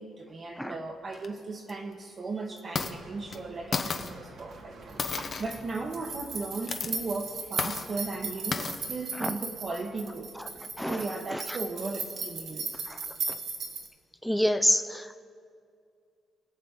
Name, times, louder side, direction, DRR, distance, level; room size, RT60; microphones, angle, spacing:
voice 1, 0.0-10.3 10.8-12.8, right 3 dB, 40° right, 1 dB, 1.1 m, -37 dB
sound 1, 1.1-1.3 1.7-1.8 2.6-2.9 3.3-3.4 3.7-4.1 5.0-5.6 6.5-7.0 7.6-7.9 8.5-8.8, left 5 dB, 45° left, 0.8 m, -32 dB
sound 2, 2.7-13.9, right 4 dB, 60° right, 1.6 m, -38 dB
voice 2, 14.2-15.2, equal, ahead, 8 dB, 0.5 m, -28 dB
22.0 x 7.4 x 3.7 m, 2.3 s
cardioid pair, 90°, 0 cm